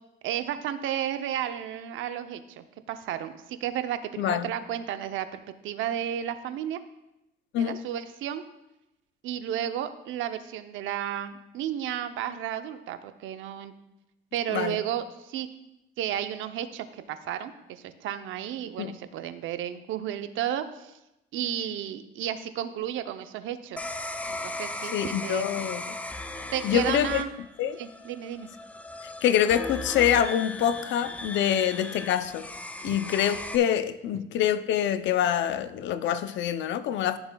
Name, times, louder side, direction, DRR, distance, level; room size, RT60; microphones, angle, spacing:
voice 1, 0.2-6.8 7.6-8.4 9.2-13.7 14.3-15.5 16.0-21.0 21.3-23.8 24.3-25.7 26.5-27.3 27.8-28.5 32.9-33.0, right 10 dB, 70° right, 10 dB, 0.6 m, -33 dB
voice 2, 14.5-14.8 18.8-18.9 24.9-26.0 26.6-27.2 27.6-27.8 29.2-32.5 32.8-37.2, left 10 dB, 60° left, 13 dB, 0.5 m, -25 dB
sound 1, 23.8-33.6, left 2 dB, 5° left, 0.3 m, -37 dB
14.0 x 7.0 x 2.2 m, 0.91 s
cardioid pair, 135°, 21 cm